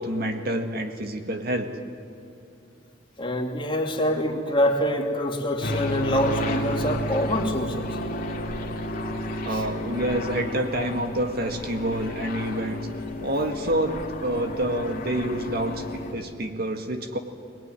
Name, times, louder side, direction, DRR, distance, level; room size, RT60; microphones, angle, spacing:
voice 1, 0.0-1.7 9.4-12.9 13.2-17.2, right 1 dB, 55° right, 5 dB, 1.9 m, -28 dB
voice 2, 3.2-8.0 9.5-9.6, equal, 30° left, 2 dB, 2.5 m, -25 dB
sound 1, 5.6-16.1, left 1 dB, 50° left, 2.3 m, -32 dB
22.5 x 20.0 x 9.9 m, 2.7 s
head